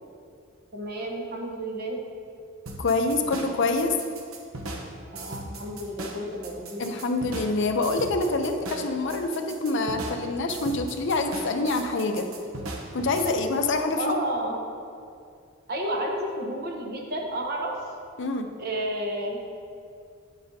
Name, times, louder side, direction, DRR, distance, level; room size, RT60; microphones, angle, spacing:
voice 1, 0.7-2.0 5.1-6.8 14.0-14.6 15.7-17.7 18.6-19.4, right 1 dB, 50° right, 1 dB, 1.0 m, -31 dB
sound 1, 2.7-13.3, right 2 dB, 85° right, 0.9 m, -38 dB
voice 2, 2.8-4.0 6.8-12.3 12.9-14.2 18.2-18.5, left 3 dB, 60° left, 6 dB, 0.6 m, -26 dB
9.0 x 8.5 x 2.7 m, 2.4 s
head